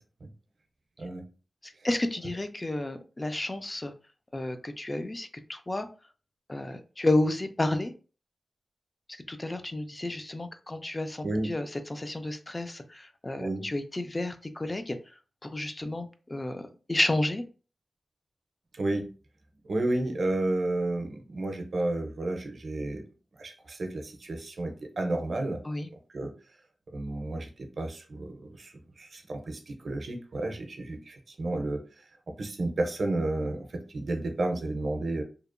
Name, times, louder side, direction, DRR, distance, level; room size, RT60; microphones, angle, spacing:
voice 1, 1.6-3.9 4.3-5.9 6.5-7.9 9.1-15.0 15.4-17.4 25.6-25.9, left 2 dB, 30° left, 7 dB, 0.3 m, -31 dB
voice 2, 11.2-11.5 13.4-13.7 18.7-19.1 19.7-23.0 23.4-25.6 26.1-26.3 26.9-31.8 32.4-35.2, right 2 dB, 70° right, 5 dB, 0.5 m, -31 dB
2.7 x 2.1 x 2.4 m, 0.35 s
wide cardioid pair, 80°, 0 cm